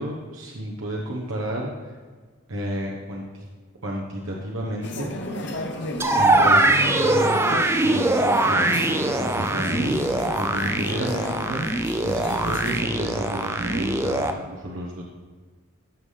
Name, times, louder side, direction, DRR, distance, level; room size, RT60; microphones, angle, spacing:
voice 1, 0.0-1.9 2.5-3.4 3.8-5.6 6.2-8.7 9.0-11.7 12.0-15.0, right 1 dB, 75° right, -2 dB, 1.1 m, -31 dB
sound 1, 4.8-12.8, left 1 dB, 55° left, 1.0 m, -33 dB
sound 2, 6.0-14.3, right 2 dB, 10° right, 0.4 m, -22 dB
13.5 x 5.6 x 3.4 m, 1.5 s
head